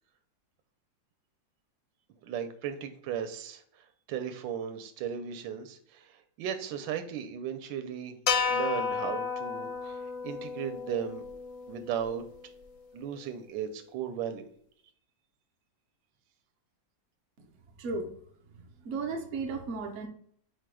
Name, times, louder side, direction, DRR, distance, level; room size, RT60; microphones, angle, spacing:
voice 1, 2.2-11.2 11.7-12.2 12.9-14.4, right 8 dB, 80° right, 8 dB, 1.3 m, -36 dB
sound 1, 8.3-12.6, left 5 dB, 70° left, 0.7 m, -33 dB
voice 2, 17.8-18.1 18.5-20.1, right 4 dB, 60° right, 3 dB, 0.8 m, -35 dB
4.5 x 2.2 x 4.8 m, 0.63 s
omnidirectional pair, 2.1 m